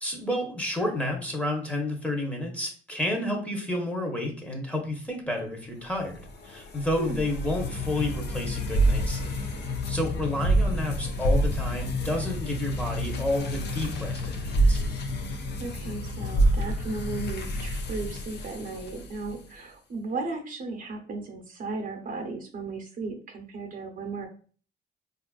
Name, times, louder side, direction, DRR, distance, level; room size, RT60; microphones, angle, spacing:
voice 1, 0.0-9.3 9.9-14.8, left 1 dB, 5° left, 1 dB, 0.9 m, -30 dB
sound 1, 6.0-19.4, right 1 dB, 60° left, 0.6 m, -28 dB
voice 2, 15.6-24.3, right 3 dB, 45° right, 3 dB, 0.7 m, -35 dB
3.9 x 2.5 x 2.3 m, 0.41 s
cardioid pair, 90°, 20 cm